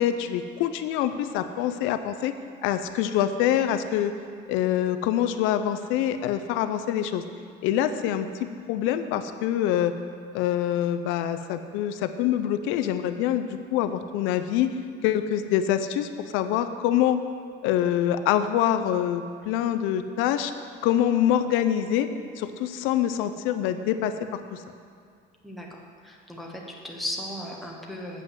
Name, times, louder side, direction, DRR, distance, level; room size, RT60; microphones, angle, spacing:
voice 1, 0.0-2.3 2.6-4.1 4.5-7.2 7.6-8.3 8.7-9.9 10.3-14.7 15.0-17.2 17.6-20.5 20.8-22.1 22.4-24.1 24.5-24.6, left 11 dB, 80° left, 9 dB, 0.5 m, -25 dB
voice 2, 25.4-28.2, left 1 dB, ahead, -2 dB, 0.8 m, -36 dB
7.6 x 5.4 x 7.5 m, 2.2 s
cardioid pair, 175°, 20 cm